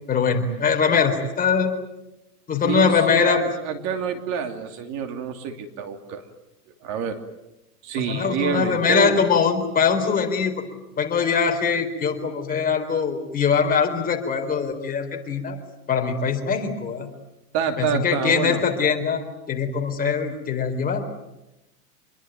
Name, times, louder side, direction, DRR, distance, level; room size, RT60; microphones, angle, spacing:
voice 1, 0.1-1.7 2.5-3.4 8.1-10.6 11.0-15.6 15.9-17.1 17.8-21.1, left 6 dB, 20° left, 3 dB, 4.0 m, -22 dB
voice 2, 2.6-6.2 6.8-7.2 7.8-9.2 17.5-18.6, right 6 dB, 35° right, 6 dB, 2.8 m, -27 dB
27.0 x 22.5 x 9.2 m, 0.94 s
hypercardioid pair, 125°, 47 cm